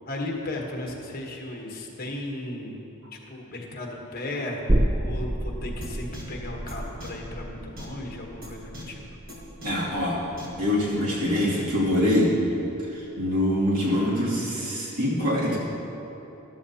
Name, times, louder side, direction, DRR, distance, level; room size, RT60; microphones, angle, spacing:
voice 1, 0.1-2.7 3.3-9.0, left 1 dB, 40° left, 0 dB, 1.2 m, -35 dB
sound 1, 4.7-12.0 12.3-12.4, right 1 dB, 15° right, 0.4 m, -30 dB
sound 2, 5.8-5.9 6.1-6.2 6.7-6.8 7.0-7.1 7.8-7.9 8.4-8.5 8.7-8.8 9.3-9.4 9.6-9.7 10.4-10.5 11.3-11.4, left 1 dB, 40° right, 1.8 m, -40 dB
voice 2, 9.6-10.2 10.6-12.4 12.9-15.6, left 1 dB, 80° right, -6 dB, 2.6 m, -24 dB
13.5 x 12.0 x 2.8 m, 3.0 s
head